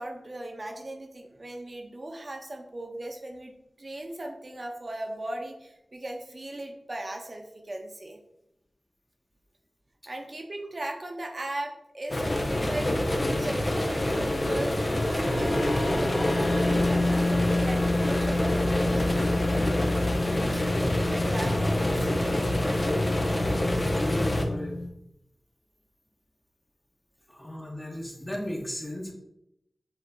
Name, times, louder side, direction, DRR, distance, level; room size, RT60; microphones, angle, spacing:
voice 1, 0.0-3.5 3.8-8.2 10.1-12.9 13.2-19.2 20.5-22.7, right 1 dB, 45° right, 3 dB, 1.2 m, -38 dB
sound 1, 12.1-24.4, left 1 dB, 40° left, 1.1 m, -27 dB
sound 2, 14.3-24.9, left 2 dB, 65° left, 1.6 m, -30 dB
voice 2, 23.5-24.8 27.3-29.1, left 1 dB, 20° left, -1 dB, 1.5 m, -36 dB
7.8 x 3.2 x 4.1 m, 0.83 s
cardioid pair, 50°, 0 cm